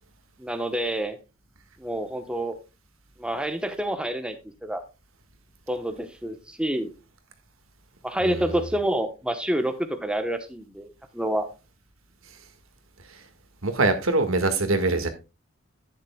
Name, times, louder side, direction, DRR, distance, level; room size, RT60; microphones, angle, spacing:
voice 1, 0.4-1.2 1.8-2.5 3.2-4.3 4.6-4.8 5.7-6.9 8.0-11.5, right 1 dB, 5° right, 1.0 m, -28 dB
voice 2, 8.2-8.6 13.1-13.2 13.6-15.1, right 3 dB, 80° right, 1.7 m, -24 dB
11.0 x 9.8 x 2.3 m
head